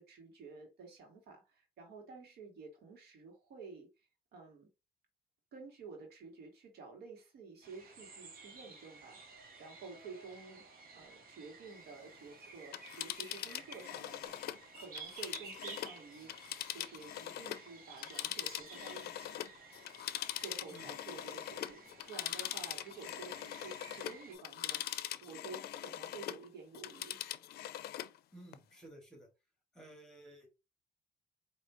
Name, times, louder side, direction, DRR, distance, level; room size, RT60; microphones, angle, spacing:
voice 1, 0.0-4.7 5.5-10.6 10.9-14.5 14.8-16.3 16.7-19.3 20.4-27.2, right 4 dB, 90° right, 1.5 m, -51 dB
sound 1, 7.6-24.4, right 4 dB, 65° right, 1.4 m, -54 dB
Telephone, 12.6-17.7 18.0-26.4 26.7-28.2 28.5-28.6, left 13 dB, 80° left, 0.4 m, -42 dB
voice 2, 28.3-29.3 29.7-30.6, right 1 dB, 5° left, 2.1 m, -55 dB
4.7 x 2.7 x 2.9 m
cardioid pair, 95°, 16 cm